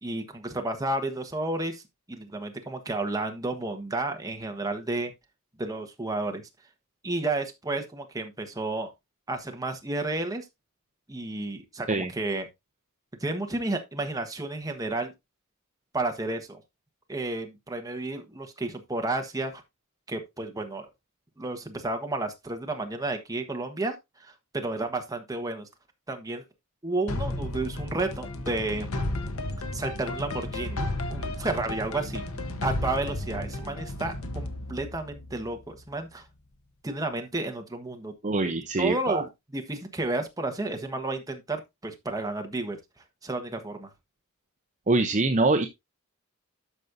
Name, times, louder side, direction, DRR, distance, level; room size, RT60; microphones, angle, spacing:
voice 1, 0.0-1.8 2.1-5.1 5.6-6.5 7.0-8.9 9.3-10.4 11.1-12.5 13.2-15.1 15.9-16.6 17.1-19.6 20.1-20.9 21.4-23.9 24.2-25.7 26.1-26.4 26.8-28.9 29.7-30.8 31.1-32.2 32.6-36.3 36.8-38.1 38.4-38.5 38.8-39.3 39.5-42.8 43.2-43.9, right 2 dB, 15° right, 1.3 m, -31 dB
sound 1, 27.1-35.9, left 2 dB, 70° left, 1.2 m, -33 dB
voice 2, 38.2-39.2 44.9-45.7, right 3 dB, 35° right, 0.6 m, -24 dB
13.0 x 5.3 x 2.7 m
head